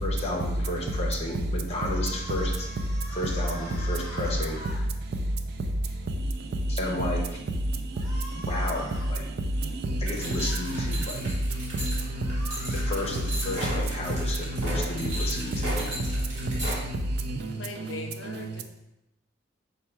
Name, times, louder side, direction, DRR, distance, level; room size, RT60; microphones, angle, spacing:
voice 1, 0.0-2.5 3.1-4.6 6.7-7.2 8.5-9.2 10.0-11.2 12.9-15.5, left 2 dB, 35° left, 0.7 m, -32 dB
sound 1, 1.7-4.8 7.9-9.1 10.3-10.9 12.0-13.2, equal, 15° right, 0.8 m, -44 dB
voice 2, 9.9-15.1 15.3-16.5 16.8-17.0 17.2-17.5 17.9-18.0 18.2-18.3, right 1 dB, 55° right, 0.4 m, -30 dB
sound 2, 10.1-16.8, right 1 dB, 40° right, 1.5 m, -36 dB
voice 3, 17.5-18.6, left 3 dB, 75° left, 0.5 m, -39 dB
4.4 x 2.2 x 4.4 m
head